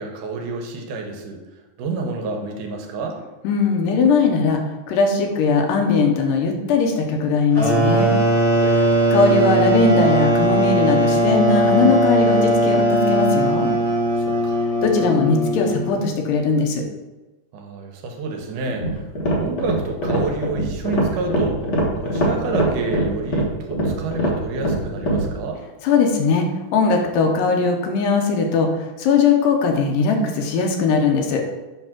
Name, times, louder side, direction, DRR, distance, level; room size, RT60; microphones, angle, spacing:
voice 1, 0.0-1.4 1.8-3.2 8.6-9.1 14.2-14.6 17.5-19.0 19.4-25.6, right 3 dB, 75° right, 2 dB, 2.2 m, -29 dB
voice 2, 3.4-4.6 4.9-8.1 9.1-13.7 14.8-16.8 25.8-31.4, left 4 dB, 90° left, 3 dB, 2.5 m, -19 dB
sound 1, 7.5-16.0, right 1 dB, 50° right, 2.1 m, -19 dB
sound 2, 18.7-25.3, right 1 dB, 70° left, 1.0 m, -22 dB
7.1 x 3.3 x 5.9 m, 1.1 s
omnidirectional pair, 3.9 m